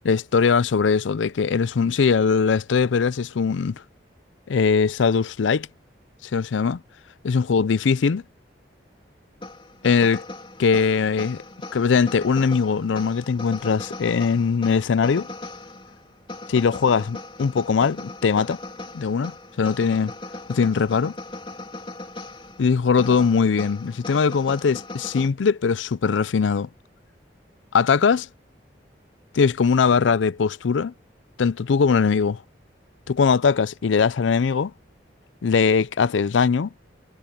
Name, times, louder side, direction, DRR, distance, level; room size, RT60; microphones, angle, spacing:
voice 1, 0.0-3.8 4.5-5.7 6.3-6.8 7.2-8.2 9.8-10.2 10.6-11.4 11.7-15.3 16.5-18.6 18.9-19.3 19.6-20.1 20.5-21.2 22.6-26.7 27.7-28.3 29.3-30.9 31.4-32.4 33.1-34.7 35.4-36.7, left 5 dB, 85° left, 0.5 m, -21 dB
sound 1, 9.4-25.3, left 2 dB, 30° left, 3.4 m, -38 dB
head